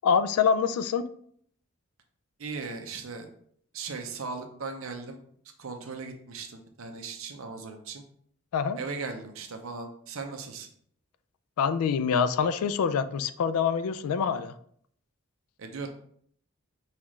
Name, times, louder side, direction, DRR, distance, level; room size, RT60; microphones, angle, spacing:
voice 1, 0.0-1.1 8.5-8.8 11.6-14.5, left 6 dB, 90° left, 13 dB, 0.3 m, -25 dB
voice 2, 2.4-3.3 3.7-5.2 5.6-8.0 8.8-10.7 15.6-15.9, right 4 dB, 75° right, 5 dB, 0.6 m, -38 dB
5.5 x 2.4 x 3.1 m, 0.63 s
head